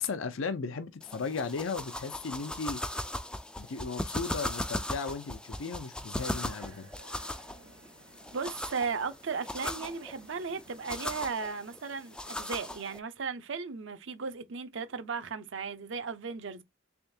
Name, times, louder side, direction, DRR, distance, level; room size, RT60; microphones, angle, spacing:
voice 1, 0.0-2.8 3.6-6.9, left 5 dB, 75° left, 0.6 m, -36 dB
sound 1, 1.0-13.0, left 1 dB, 5° left, 0.3 m, -38 dB
sound 2, 6.2-11.3, right 3 dB, 85° right, 1.2 m, -57 dB
voice 2, 8.3-16.6, right 5 dB, 65° right, 0.6 m, -36 dB
3.5 x 3.4 x 2.7 m
head